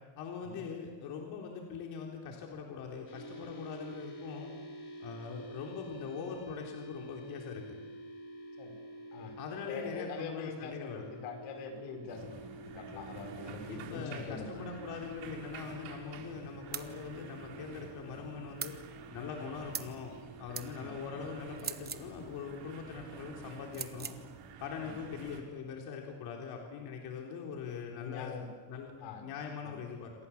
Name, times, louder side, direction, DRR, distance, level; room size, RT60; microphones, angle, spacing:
voice 1, 0.2-4.5 5.0-7.8 9.4-11.1 13.7-18.7 19.1-20.1 20.4-24.2 24.6-28.4 28.7-28.9 29.2-30.1, left 6 dB, 55° left, 1 dB, 3.7 m, -42 dB
sound 1, 3.1-22.8, right 1 dB, 25° left, 4.7 m, -49 dB
voice 2, 9.7-12.5 12.7-14.7 20.8-20.9 24.8-25.0 27.9-28.5 29.0-29.3 29.6-29.8, left 5 dB, 80° left, 5 dB, 5.3 m, -44 dB
sound 2, 12.1-25.4, right 6 dB, 75° right, 4.9 m, -49 dB
sound 3, 16.7-16.9 18.6-18.8 19.7-20.0 20.5-20.7 21.6-22.1 23.7-24.2, right 7 dB, 20° right, 1.1 m, -39 dB
28.0 x 26.5 x 7.3 m, 1.3 s
cardioid pair, 180°, 44 cm